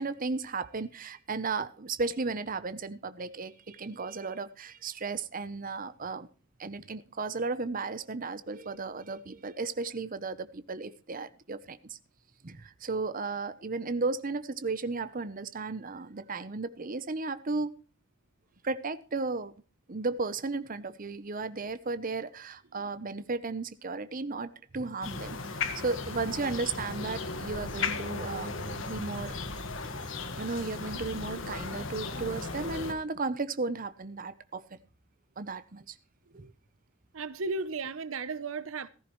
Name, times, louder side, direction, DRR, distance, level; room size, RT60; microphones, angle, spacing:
voice 1, 0.0-6.3 6.6-12.0 12.4-17.7 18.6-19.5 19.9-28.5 28.9-29.3 30.4-34.6 35.4-35.9 36.3-36.5, right 3 dB, 40° right, 0.7 m, -34 dB
sound 1, 25.0-32.9, left 3 dB, 65° left, 1.6 m, -36 dB
voice 2, 37.1-38.9, right 3 dB, 75° right, 0.7 m, -34 dB
15.5 x 14.0 x 3.1 m
head